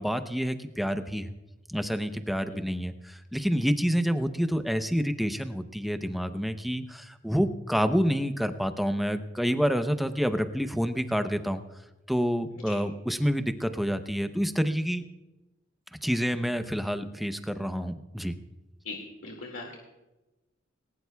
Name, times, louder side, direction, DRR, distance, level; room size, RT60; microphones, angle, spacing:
voice 1, 0.0-1.3 1.7-11.6 12.1-15.0 16.0-18.3, equal, ahead, 8 dB, 0.7 m, -28 dB
voice 2, 19.2-19.8, left 3 dB, 85° left, 0 dB, 2.1 m, -39 dB
20.0 x 19.0 x 2.3 m, 1.0 s
head